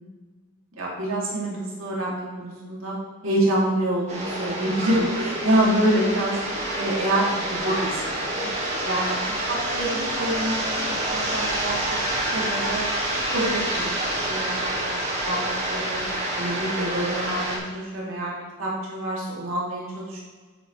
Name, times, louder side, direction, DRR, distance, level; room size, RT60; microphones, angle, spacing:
voice 1, 0.8-3.0 3.2-6.4 6.7-8.5 8.8-12.0 12.3-12.8 13.3-14.0 14.3-15.0 15.2-16.0 16.4-18.3 18.6-20.2, right 1 dB, 70° right, -5 dB, 2.8 m, -26 dB
sound 1, 4.1-17.6, right 1 dB, 35° right, 2.1 m, -27 dB
9.0 x 9.0 x 3.3 m, 1.4 s
head